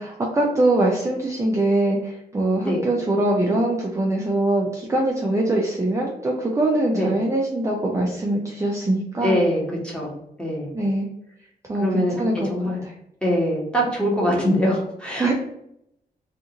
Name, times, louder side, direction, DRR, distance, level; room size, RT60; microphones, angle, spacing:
voice 1, 0.0-9.4 10.7-11.1 11.7-12.5 12.8-12.9 15.2-15.3, right 1 dB, 20° right, -2 dB, 0.4 m, -22 dB
voice 2, 9.2-10.1 10.4-10.7 11.8-12.8 13.2-15.3, equal, 5° left, -4 dB, 1.0 m, -23 dB
2.5 x 2.5 x 2.8 m, 0.76 s
cardioid pair, 100°, 16 cm